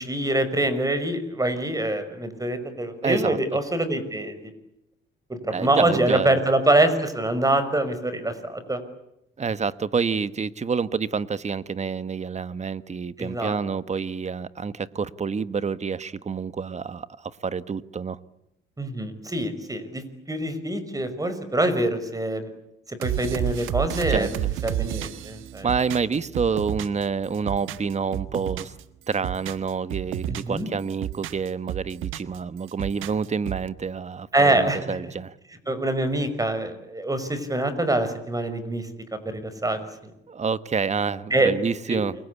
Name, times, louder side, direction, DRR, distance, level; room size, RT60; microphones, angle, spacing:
voice 1, 0.0-4.5 5.3-8.8 13.2-13.6 18.8-22.5 22.9-25.7 30.4-30.7 34.3-35.1 35.7-38.9 39.3-40.1 41.3-41.5 41.9-42.0, right 1 dB, 15° right, 6.0 m, -25 dB
voice 2, 3.0-3.4 5.5-6.4 9.4-18.2 24.1-24.3 25.6-28.7 29.1-35.3 40.3-42.1, right 5 dB, 35° right, 1.4 m, -28 dB
sound 1, 23.0-27.1 27.3-28.8 29.1-30.6 30.9-32.4 32.7-33.7, right 12 dB, 90° right, 1.5 m, -31 dB
29.0 x 23.5 x 8.4 m
cardioid pair, 90°, 20 cm